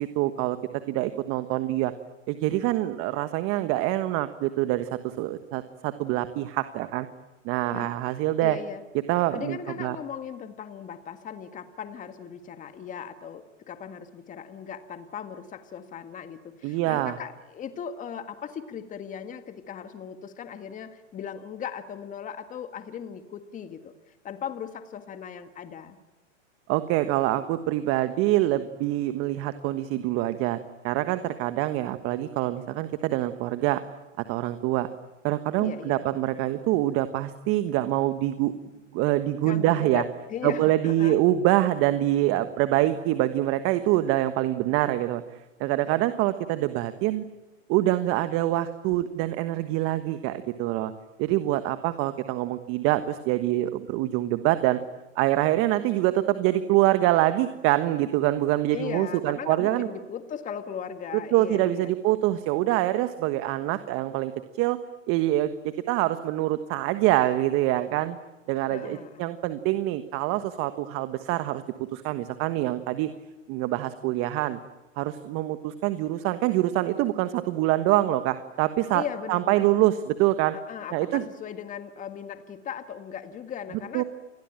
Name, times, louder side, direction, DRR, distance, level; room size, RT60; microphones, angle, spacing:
voice 1, 0.0-1.9 2.3-7.1 7.4-8.6 9.1-10.0 16.6-17.2 26.7-30.6 30.8-33.8 34.3-34.9 35.2-38.5 38.9-40.0 40.4-45.2 45.6-47.2 47.7-50.9 51.2-54.8 55.1-59.9 61.3-64.8 65.1-68.2 68.5-71.6 71.9-73.1 73.5-74.6 75.0-79.0 79.3-80.6 80.9-81.3 83.9-84.0, right 15 dB, 35° right, 11 dB, 1.4 m, -25 dB
voice 2, 8.4-8.8 9.3-23.9 24.2-26.0 35.6-36.0 39.4-41.2 58.7-61.9 68.7-69.3 78.9-79.7 80.7-84.0, left 8 dB, 20° left, 9 dB, 1.7 m, -38 dB
28.5 x 21.5 x 9.0 m, 1.1 s
hypercardioid pair, 115°, 37 cm